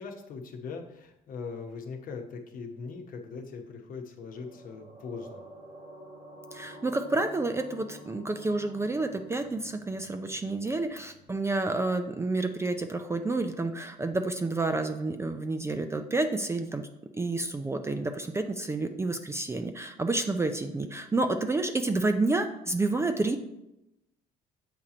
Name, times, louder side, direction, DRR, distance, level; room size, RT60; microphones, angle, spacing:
voice 1, 0.0-5.4, left 5 dB, 55° left, 3 dB, 1.0 m, -40 dB
sound 1, 4.3-13.0 13.2-13.4, equal, 55° right, 1.2 m, -50 dB
voice 2, 6.5-16.9 17.1-23.4, right 2 dB, 15° right, 7 dB, 0.4 m, -29 dB
7.4 x 2.9 x 4.9 m, 0.88 s
cardioid pair, 110°, 17 cm